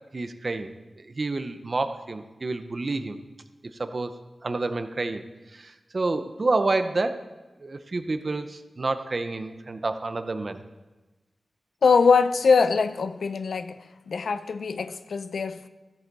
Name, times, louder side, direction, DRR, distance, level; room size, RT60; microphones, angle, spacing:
voice 1, 0.1-0.7 1.0-3.2 3.8-4.1 4.4-5.2 5.5-7.2 7.6-10.6, right 3 dB, 45° right, 0.7 m, -29 dB
voice 2, 11.8-13.8 14.1-15.7, left 5 dB, 85° left, 0.4 m, -22 dB
13.5 x 8.0 x 4.0 m
wide cardioid pair, 80°, 0 cm